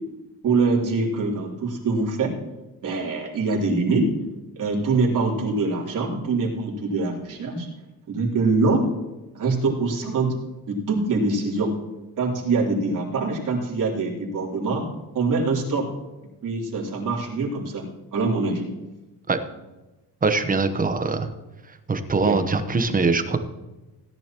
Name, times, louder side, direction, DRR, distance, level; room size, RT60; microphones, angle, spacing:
voice 1, 0.4-2.4 2.8-4.1 4.6-7.7 8.1-8.9 9.3-10.4 10.7-11.7 12.2-14.8 15.1-15.9 16.4-17.8 18.1-18.7 22.2-22.4, right 3 dB, 55° right, -3 dB, 3.7 m, -24 dB
voice 2, 20.2-21.3 21.9-23.4, right 3 dB, 20° right, 8 dB, 1.0 m, -22 dB
17.5 x 10.5 x 3.0 m, 1.1 s
cardioid pair, 135°, 38 cm